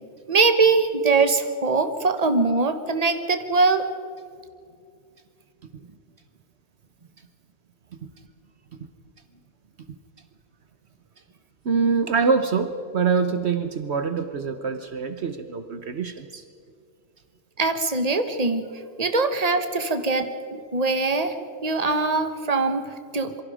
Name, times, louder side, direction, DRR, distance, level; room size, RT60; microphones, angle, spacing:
voice 1, 0.3-3.8 17.6-18.7 19.0-21.3 21.6-23.3, right 3 dB, 35° right, 8 dB, 1.5 m, -22 dB
voice 2, 11.6-16.4, right 5 dB, 65° right, 8 dB, 1.3 m, -25 dB
27.0 x 23.5 x 5.0 m, 2.3 s
omnidirectional pair, 1.2 m